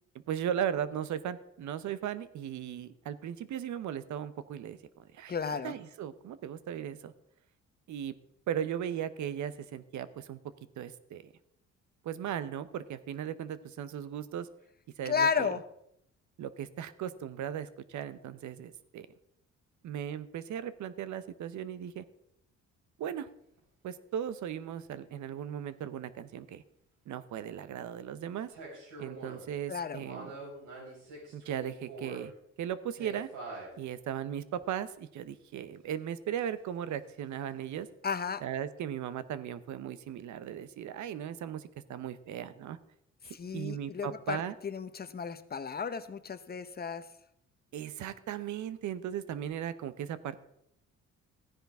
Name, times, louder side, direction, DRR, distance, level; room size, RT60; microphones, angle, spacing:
voice 1, 0.3-5.3 5.6-7.1 7.9-8.1 8.5-10.4 10.8-11.3 12.0-14.5 15.0-15.6 16.4-19.1 19.8-22.0 23.0-23.3 23.8-26.6 27.1-28.5 29.0-30.3 31.3-32.3 32.6-33.3 33.8-37.9 38.4-42.8 43.2-44.5 47.7-50.4, right 9 dB, 70° right, 14 dB, 0.8 m, -37 dB
voice 2, 5.3-5.7 15.1-15.6 29.7-30.0 38.0-38.4 43.4-47.0, left 6 dB, 30° left, 12 dB, 0.9 m, -33 dB
sound 1, 23.6-23.7 28.5-29.5 30.0-32.3 32.9-33.7 34.5-34.6, right 2 dB, 90° right, 5.8 m, -45 dB
14.5 x 10.0 x 3.5 m, 0.76 s
cardioid pair, 90°, 30 cm